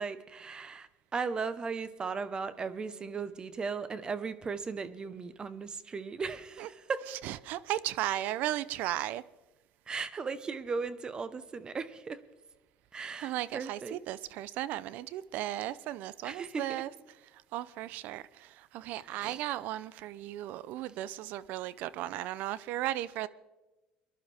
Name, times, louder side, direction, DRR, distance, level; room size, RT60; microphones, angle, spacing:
voice 1, 0.0-7.1 9.9-12.2 12.9-14.0 16.2-16.6 19.0-19.4, right 5 dB, 30° right, 1.1 m, -37 dB
voice 2, 7.1-9.2 13.2-16.9 17.5-23.3, right 14 dB, 65° right, 0.6 m, -36 dB
24.0 x 11.5 x 3.6 m
supercardioid pair, 100°, 3 cm